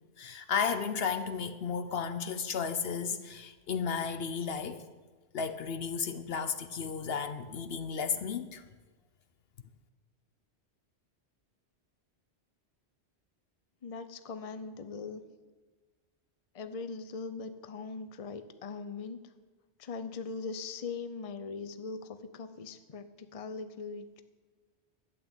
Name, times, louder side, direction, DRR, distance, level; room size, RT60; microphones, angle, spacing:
voice 1, 0.2-4.9 5.3-8.6, left 6 dB, 65° left, 0.9 m, -33 dB
voice 2, 13.8-15.2 16.5-19.2 19.8-24.2, left 4 dB, 35° left, 0.8 m, -40 dB
12.5 x 8.5 x 8.9 m
omnidirectional pair, 1.1 m